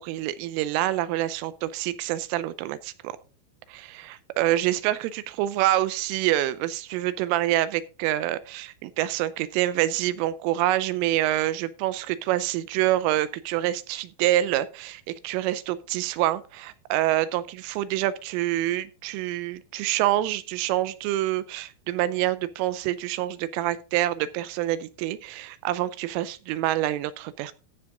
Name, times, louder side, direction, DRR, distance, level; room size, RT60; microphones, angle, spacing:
voice 1, 0.0-3.1 3.7-27.5, right 14 dB, 80° right, 3.1 m, -26 dB
14.5 x 6.0 x 3.8 m
omnidirectional pair, 6.0 m